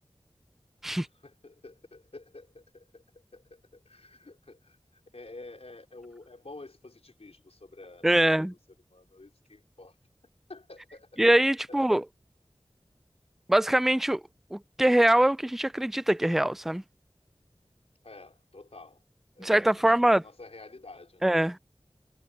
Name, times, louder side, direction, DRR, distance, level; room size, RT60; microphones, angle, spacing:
voice 1, 0.9-8.1 8.4-8.6 8.9-10.0 10.5-11.2 11.7-11.8 18.0-19.0 19.4-21.4, left 2 dB, 75° left, 4.3 m, -49 dB
voice 2, 8.0-8.5 11.2-12.0 13.5-14.2 14.5-16.8 19.4-20.2 21.2-21.6, right 1 dB, 5° right, 0.4 m, -23 dB
wide cardioid pair, 45°, 11 cm